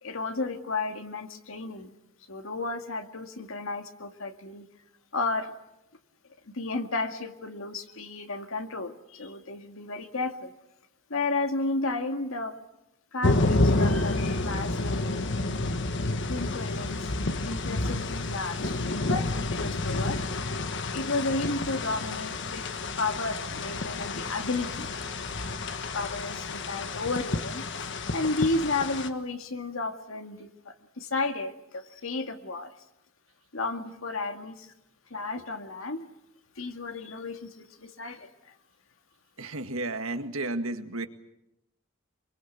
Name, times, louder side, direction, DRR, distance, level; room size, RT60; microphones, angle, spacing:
voice 1, 0.0-1.9 2.3-4.7 5.1-5.6 6.5-10.5 11.1-12.6 13.1-15.0 16.2-17.1 17.4-18.8 19.1-20.2 20.9-22.7 23.0-24.9 25.4-32.7 33.5-34.7 35.1-36.1 36.6-38.6, left 3 dB, 80° left, 6 dB, 2.1 m, -33 dB
sound 1, 13.2-29.1, left 2 dB, 60° left, 1.5 m, -29 dB
voice 2, 39.4-41.1, right 2 dB, 90° right, 7 dB, 1.9 m, -32 dB
25.0 x 23.0 x 8.2 m, 0.88 s
head